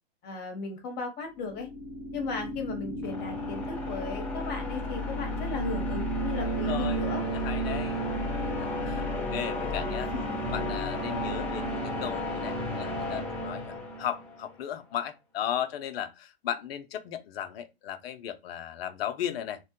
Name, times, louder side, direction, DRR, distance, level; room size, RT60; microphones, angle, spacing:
voice 1, 0.2-1.7 2.1-7.2 8.8-9.2 10.1-10.2, left 4 dB, 30° left, 1.0 m, -36 dB
sound 1, 1.4-14.4, equal, 5° left, 0.6 m, -32 dB
voice 2, 6.4-7.0 7.3-8.0 8.6-10.1 10.5-19.6, left 10 dB, 65° left, 0.6 m, -36 dB
3.2 x 2.2 x 2.8 m
hypercardioid pair, 130°, 33 cm